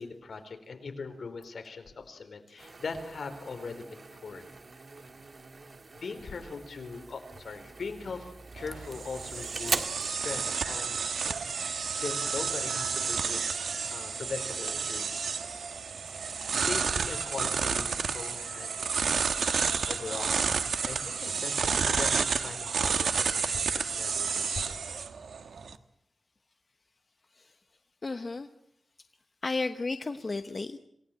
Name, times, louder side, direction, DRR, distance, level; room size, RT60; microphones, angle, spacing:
voice 1, 0.0-4.4 5.9-15.3 16.3-19.3 19.9-24.8, left 4 dB, 65° left, 7 dB, 4.2 m, -41 dB
sound 1, 2.6-10.1, right 3 dB, 40° right, 1.8 m, -40 dB
sound 2, 8.6-25.7, right 5 dB, 90° right, 1.4 m, -31 dB
voice 2, 28.0-28.5 29.4-30.8, left 3 dB, 35° left, 8 dB, 1.0 m, -33 dB
27.5 x 18.0 x 8.8 m, 0.76 s
wide cardioid pair, 160°, 0 cm